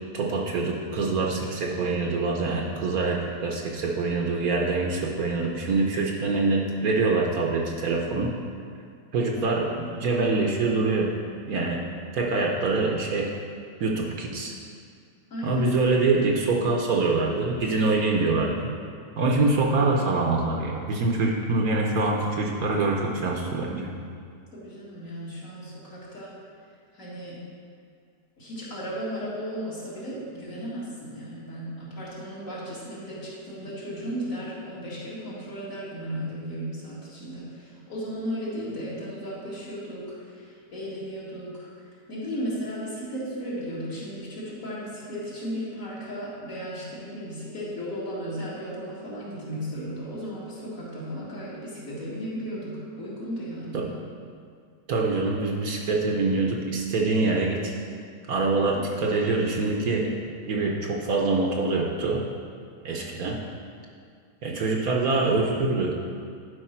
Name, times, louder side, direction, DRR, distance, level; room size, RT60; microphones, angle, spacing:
voice 1, 0.1-8.3 9.1-11.1 11.5-11.8 12.1-13.3 13.8-14.5 15.4-18.7 19.2-23.9 53.7-53.8 54.9-57.7 58.3-60.1 60.5-62.2 62.8-63.4 64.4-66.0, right 3 dB, 65° right, 0 dB, 1.2 m, -25 dB
voice 2, 15.3-15.6 24.5-26.3 26.9-27.4 28.4-41.7 42.1-53.9 62.9-63.1, equal, 50° left, -8 dB, 2.4 m, -35 dB
11.5 x 5.0 x 4.4 m, 2.2 s
omnidirectional pair, 1.8 m